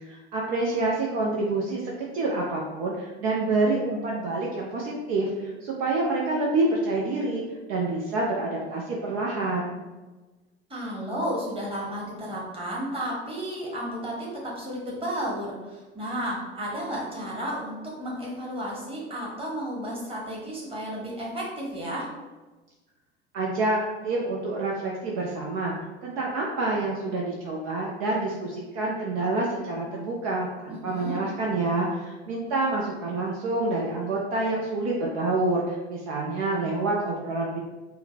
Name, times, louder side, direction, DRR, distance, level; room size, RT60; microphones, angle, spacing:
voice 1, 0.0-1.8 2.1-7.4 7.7-9.8 23.3-25.7 26.0-37.6, right 2 dB, 50° right, -2 dB, 0.7 m, -27 dB
voice 2, 10.7-22.1 30.7-31.2, equal, 15° right, -4 dB, 1.4 m, -33 dB
3.8 x 2.1 x 4.1 m, 1.2 s
figure-of-eight pair, 65°, 33 cm